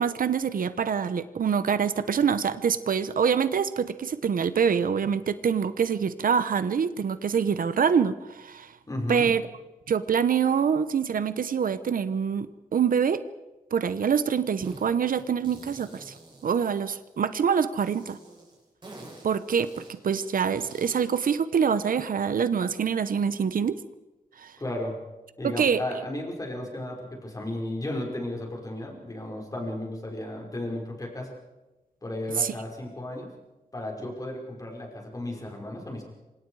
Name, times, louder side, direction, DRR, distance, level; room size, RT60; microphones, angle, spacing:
voice 1, 0.0-8.7 9.1-9.4 9.9-13.2 13.7-16.1 16.4-18.2 19.2-23.8 24.4-24.5 25.4-25.8 32.4-32.5, right 7 dB, 75° right, 13 dB, 1.0 m, -25 dB
voice 2, 8.9-9.3 24.6-25.0 25.4-31.3 32.0-33.3 33.7-36.0, left 1 dB, 25° left, 0 dB, 5.3 m, -34 dB
sound 1, 14.6-14.8 15.1-17.3 17.8-21.2, right 2 dB, 35° right, 7.6 m, -48 dB
27.5 x 25.5 x 4.9 m, 1.1 s
wide cardioid pair, 155°, 15 cm